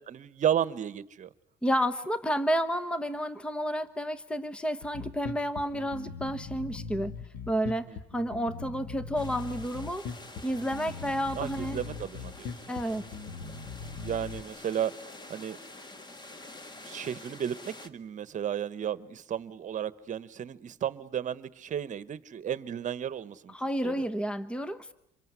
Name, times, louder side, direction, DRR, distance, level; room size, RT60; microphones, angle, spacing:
voice 1, 0.1-1.3 7.9-8.0 11.3-12.5 13.1-13.2 14.0-15.6 16.8-23.5 23.8-23.9, right 9 dB, 45° right, 16 dB, 1.2 m, -33 dB
voice 2, 1.6-7.1 7.5-10.1 10.4-11.8 12.7-13.0 23.5-24.9, equal, 5° left, 13 dB, 1.0 m, -31 dB
Bass guitar, 4.8-14.4, left 5 dB, 65° left, 2.0 m, -40 dB
sound 1, 9.1-17.9, left 2 dB, 25° left, 1.9 m, -48 dB
27.0 x 22.5 x 9.7 m, 0.78 s
cardioid pair, 110°, 17 cm